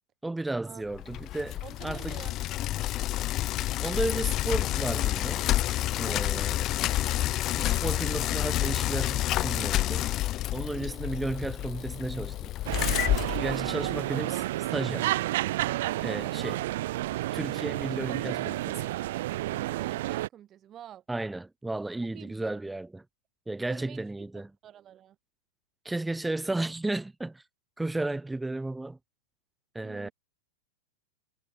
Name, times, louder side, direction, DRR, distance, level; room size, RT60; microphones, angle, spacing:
voice 1, 0.2-2.2 3.8-5.5 6.0-6.7 7.6-10.1 10.5-12.5 13.4-14.4 14.7-15.2 16.0-16.6 17.3-18.9 21.1-23.0 23.5-24.5 25.8-27.4 27.8-29.0 29.7-30.1, right 2 dB, 5° right, 3.9 m, -33 dB
Bicycle, 0.9-14.1, left 15 dB, 35° left, 0.9 m, -29 dB
voice 2, 1.6-2.3 6.2-6.5 10.7-11.1 13.4-13.8 16.0-16.6 19.5-21.0 22.1-22.6 23.7-25.2 26.5-26.6 29.8-30.1, right 10 dB, 30° right, 6.4 m, -47 dB
sound 1, 12.7-20.3, right 16 dB, 60° right, 2.7 m, -31 dB
hypercardioid pair, 105°, 0 cm